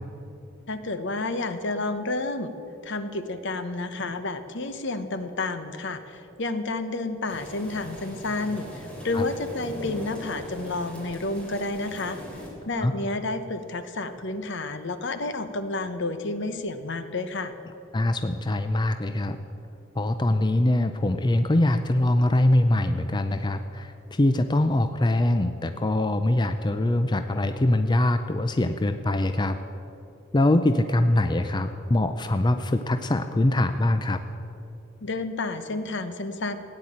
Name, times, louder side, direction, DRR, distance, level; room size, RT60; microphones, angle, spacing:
voice 1, 0.7-2.5 2.8-12.2 12.7-17.5 35.0-36.6, left 2 dB, 60° left, 10 dB, 1.0 m, -30 dB
sound 1, 7.3-12.5, equal, 5° left, 3.4 m, -40 dB
voice 2, 17.9-19.4 20.0-29.6 30.3-34.2, left 1 dB, 20° left, 9 dB, 0.5 m, -23 dB
16.0 x 9.8 x 8.7 m, 2.8 s
head